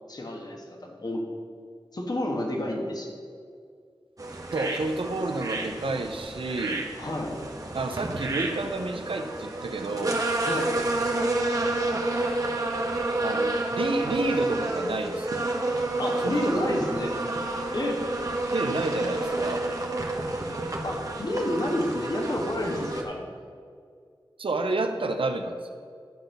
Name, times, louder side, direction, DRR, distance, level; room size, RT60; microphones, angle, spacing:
voice 1, 0.1-1.2 1.9-3.1 7.0-7.4 10.4-10.8 16.0-17.1 17.7-18.1 20.8-23.3, left 1 dB, 50° left, 1 dB, 1.4 m, -30 dB
sound 1, 4.2-23.0, right 2 dB, 40° right, 1.1 m, -30 dB
voice 2, 4.5-6.8 7.7-10.2 13.2-15.4 16.2-17.1 18.5-19.6 24.4-25.7, right 2 dB, 90° right, 5 dB, 0.7 m, -30 dB
12.0 x 4.1 x 6.6 m, 2.1 s
wide cardioid pair, 70°, 9 cm